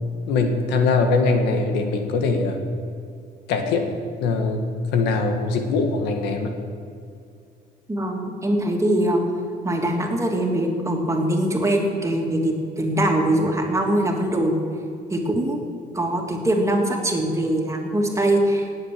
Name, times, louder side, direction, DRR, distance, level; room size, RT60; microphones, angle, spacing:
voice 1, 0.3-2.6 3.5-3.9 4.2-4.6 4.9-6.6, left 4 dB, 90° left, 5 dB, 1.8 m, -22 dB
voice 2, 7.9-9.2 9.6-14.6 15.1-15.6 15.9-18.7, right 1 dB, 15° right, 1 dB, 2.5 m, -22 dB
18.0 x 7.8 x 7.6 m, 2.4 s
cardioid pair, 110°, 17 cm